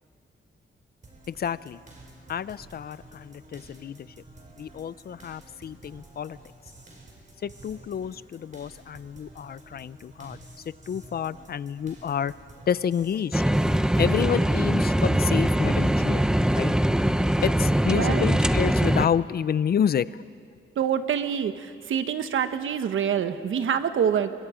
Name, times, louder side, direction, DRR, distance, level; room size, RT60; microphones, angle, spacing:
sound 1, 1.0-14.4, right 1 dB, 40° right, 5.0 m, -50 dB
voice 1, 1.3-1.8 2.3-4.1 4.6-6.4 7.4-10.4 10.6-12.3 12.7-13.4 14.0-16.3 16.5-16.7 17.4-20.2, left 8 dB, 50° left, 17 dB, 0.5 m, -29 dB
sound 2, 13.3-19.1, right 1 dB, 5° right, 0.6 m, -22 dB
voice 2, 17.9-18.3 20.8-24.3, right 8 dB, 75° right, 9 dB, 1.2 m, -26 dB
29.0 x 24.0 x 5.1 m, 2.2 s
wide cardioid pair, 125°, 20 cm